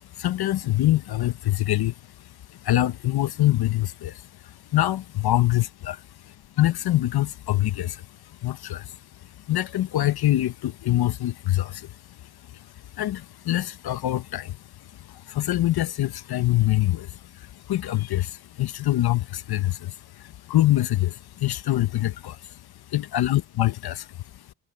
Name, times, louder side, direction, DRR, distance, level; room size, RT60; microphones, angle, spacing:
voice 1, 0.2-1.9 2.6-5.9 6.6-8.0 8.4-9.0 9.5-11.9 12.5-12.6 13.0-14.6 15.0-22.6 22.9-24.1, left 15 dB, 70° left, 0.9 m, -24 dB
cardioid pair, 70°, 40 cm